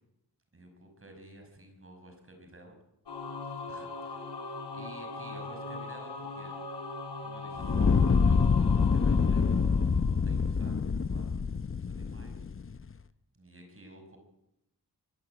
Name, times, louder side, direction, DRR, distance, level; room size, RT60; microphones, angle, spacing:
voice 1, 0.5-2.7 3.4-6.6 7.2-11.5 11.8-12.5 13.3-14.2, right 1 dB, 35° right, 4 dB, 5.5 m, -53 dB
Singing / Musical instrument, 3.1-10.5, left 3 dB, 85° left, 3.8 m, -40 dB
Fire, 7.6-12.8, left 5 dB, 35° left, 0.7 m, -26 dB
24.5 x 15.0 x 8.8 m, 0.85 s
wide cardioid pair, 125°, 40 cm